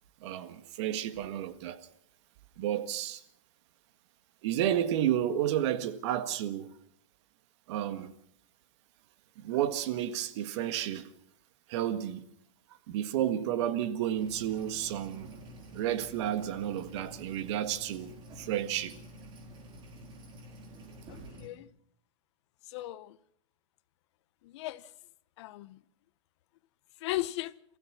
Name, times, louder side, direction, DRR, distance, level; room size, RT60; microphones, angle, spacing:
voice 1, 0.2-1.9 2.6-3.2 4.4-6.7 7.7-8.1 9.4-11.1 11.7-12.2 12.9-15.3 15.7-19.0, right 11 dB, 55° right, 1.8 m, -31 dB
sound 1, 14.2-21.5, equal, 30° right, 4.8 m, -49 dB
voice 2, 21.1-21.7 22.7-23.2 24.4-24.8 25.4-25.8 27.0-27.5, left 17 dB, 55° left, 1.0 m, -36 dB
27.5 x 15.5 x 6.2 m
hypercardioid pair, 130°, 17 cm